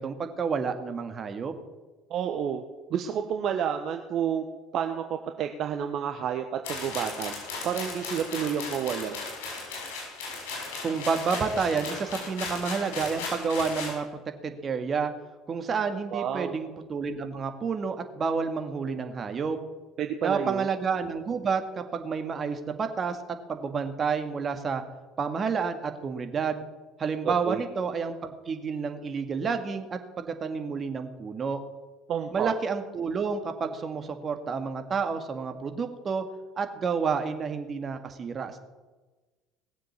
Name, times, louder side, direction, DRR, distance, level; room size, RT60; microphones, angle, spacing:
voice 1, 0.0-1.5 10.8-14.1 14.4-15.1 15.5-19.6 20.2-24.8 25.2-26.6 27.0-31.6 32.3-36.3 36.6-38.6, right 5 dB, 35° right, 6 dB, 1.9 m, -30 dB
voice 2, 2.1-2.6 2.9-4.4 4.7-7.3 7.6-9.2 16.1-16.5 20.0-20.7 27.2-27.6 32.1-32.5, right 8 dB, 55° right, 6 dB, 1.1 m, -30 dB
sound 1, 6.6-13.9, left 4 dB, 75° left, 6.2 m, -36 dB
19.0 x 7.5 x 7.3 m, 1.2 s
hypercardioid pair, 65°, 0 cm